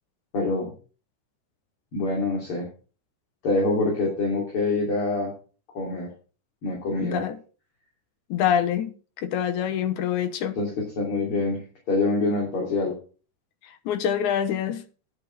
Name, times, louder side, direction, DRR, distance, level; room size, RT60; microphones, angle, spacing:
voice 1, 0.3-0.7 1.9-2.7 3.4-5.3 5.7-6.1 6.6-7.2 10.6-13.0, left 3 dB, 45° left, 3.7 m, -25 dB
voice 2, 7.0-7.4 8.3-10.6 13.6-14.8, left 9 dB, 75° left, 2.4 m, -26 dB
10.5 x 8.6 x 5.7 m
omnidirectional pair, 3.7 m